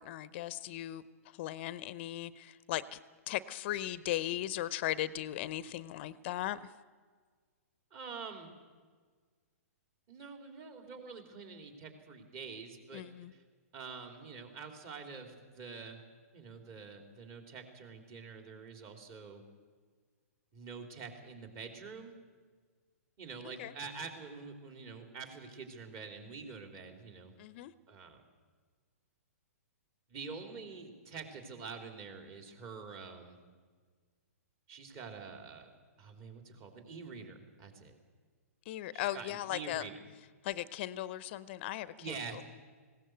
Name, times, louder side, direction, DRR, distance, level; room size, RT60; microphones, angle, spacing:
voice 1, 0.0-3.0 3.3-6.7 12.9-13.3 23.6-23.7 27.4-27.7 38.7-39.9 40.4-42.4, left 14 dB, 45° left, 0.6 m, -38 dB
voice 2, 7.9-8.5 10.1-13.0 13.3-13.4 13.7-16.0 16.3-19.4 20.5-22.1 23.2-27.3 27.9-28.2 30.1-33.4 34.7-35.7 36.0-37.9 38.9-40.0 42.0-42.4, right 5 dB, 35° right, 3.4 m, -46 dB
20.0 x 17.0 x 7.9 m
hypercardioid pair, 130°, 8 cm